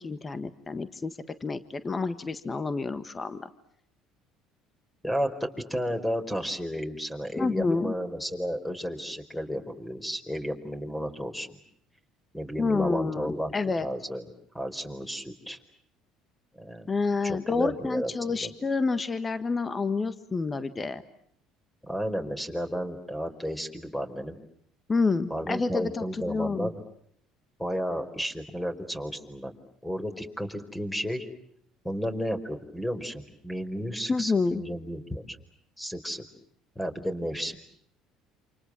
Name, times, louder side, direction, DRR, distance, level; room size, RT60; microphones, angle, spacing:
voice 1, 0.0-3.5 7.4-7.9 12.6-13.9 16.9-21.0 24.9-26.7 34.1-34.6, left 4 dB, 25° left, 12 dB, 1.5 m, -28 dB
voice 2, 5.0-11.6 12.3-13.5 13.8-14.3 14.5-15.6 16.6-16.9 17.2-18.5 21.8-24.4 25.3-26.7 27.6-29.5 29.8-31.3 31.8-35.4 35.8-36.2 36.7-37.6, equal, 5° left, 7 dB, 4.8 m, -32 dB
28.5 x 27.0 x 7.5 m, 0.67 s
hypercardioid pair, 75°, 0 cm